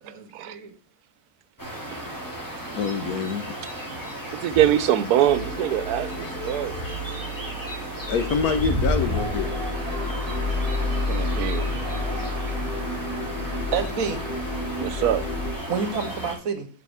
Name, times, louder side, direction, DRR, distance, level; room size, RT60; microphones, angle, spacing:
voice 1, 0.0-0.7 13.7-14.3 15.7-16.7, right 5 dB, 65° right, 1.4 m, -29 dB
sound 1, 1.6-16.4, equal, 10° left, 2.6 m, -33 dB
voice 2, 2.7-3.5 6.2-6.3 6.8-6.9 8.1-9.5, left 5 dB, 75° left, 1.4 m, -26 dB
voice 3, 4.4-6.8 11.1-11.7 14.8-15.2, right 11 dB, 85° right, 1.2 m, -23 dB
sound 2, 5.3-15.5, left 2 dB, 50° left, 1.2 m, -31 dB
sound 3, 8.9-16.3, right 3 dB, 25° right, 1.0 m, -39 dB
11.0 x 4.8 x 3.5 m
omnidirectional pair, 1.6 m